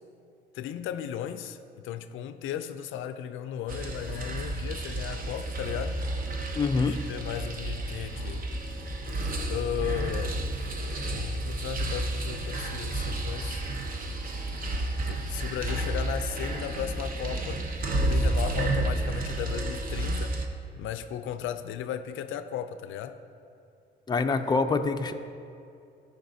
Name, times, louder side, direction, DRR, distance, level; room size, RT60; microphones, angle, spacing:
voice 1, 0.5-6.0 6.8-8.5 9.5-10.4 11.1-13.6 15.1-17.7 18.0-20.4 20.7-23.2, left 9 dB, 80° left, 10 dB, 0.4 m, -35 dB
sound 1, 3.7-20.4, right 1 dB, 45° right, 0.9 m, -31 dB
voice 2, 6.6-6.9 24.1-25.1, left 4 dB, 20° left, 7 dB, 0.4 m, -25 dB
13.0 x 5.2 x 2.7 m, 2.5 s
cardioid pair, 90°, 20 cm